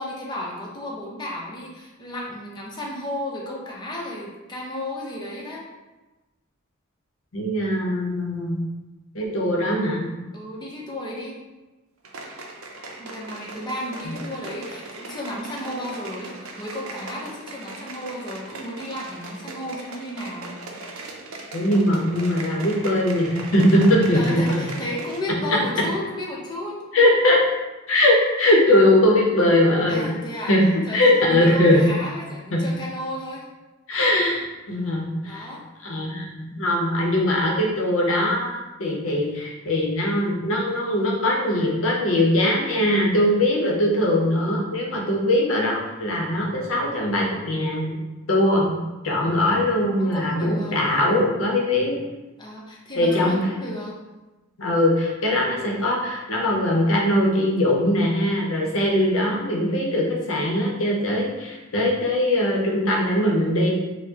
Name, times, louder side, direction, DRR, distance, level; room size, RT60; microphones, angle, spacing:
voice 1, 0.0-5.6 10.3-11.3 13.0-20.6 24.1-26.8 29.9-30.5 30.9-33.5 35.2-35.6 50.0-50.8 52.4-54.0, left 1 dB, 20° left, -4 dB, 0.7 m, -33 dB
voice 2, 7.3-8.6 9.1-10.0 14.0-14.1 21.5-24.6 26.9-27.4 27.9-30.1 30.5-30.7 30.9-31.8 32.5-32.6 33.9-35.5 35.8-48.0 48.3-48.7 49.0-52.0 53.0-53.4 54.6-63.7, left 1 dB, 70° left, -2 dB, 0.7 m, -21 dB
sound 1, 12.0-25.3 25.6-25.7, right 2 dB, 75° right, 0.5 m, -39 dB
4.3 x 2.1 x 2.8 m, 1.1 s
head